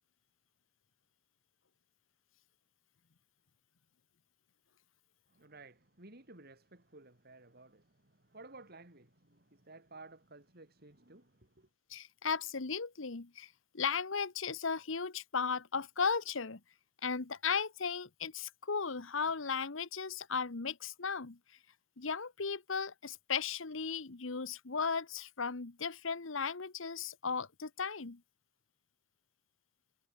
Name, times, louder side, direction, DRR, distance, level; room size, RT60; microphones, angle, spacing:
voice 1, 5.3-11.7, right 2 dB, 50° right, 3.7 m, -55 dB
voice 2, 11.9-16.6 17.0-21.4 22.0-28.2, left 5 dB, 70° left, 1.1 m, -36 dB
head